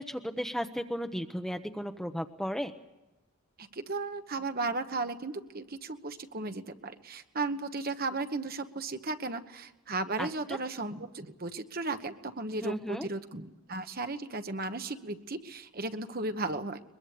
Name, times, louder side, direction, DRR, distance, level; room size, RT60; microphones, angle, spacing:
voice 1, 0.0-2.7 10.2-10.6 12.6-13.1, equal, ahead, 6 dB, 0.9 m, -35 dB
voice 2, 3.6-16.8, right 3 dB, 40° right, 8 dB, 1.2 m, -35 dB
22.5 x 22.5 x 8.5 m, 1.0 s
head